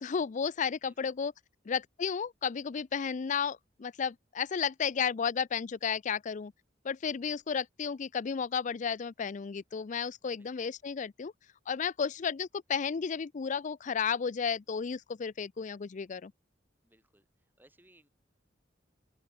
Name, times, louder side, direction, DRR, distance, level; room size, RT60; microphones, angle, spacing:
voice 1, 0.0-1.3 1.7-6.5 6.8-11.3 11.7-16.3, left 6 dB, 40° left, 0.4 m, -33 dB
voice 2, 0.8-1.1 10.3-10.7 16.8-18.1, right 1 dB, 10° right, 6.4 m, -65 dB
open air
head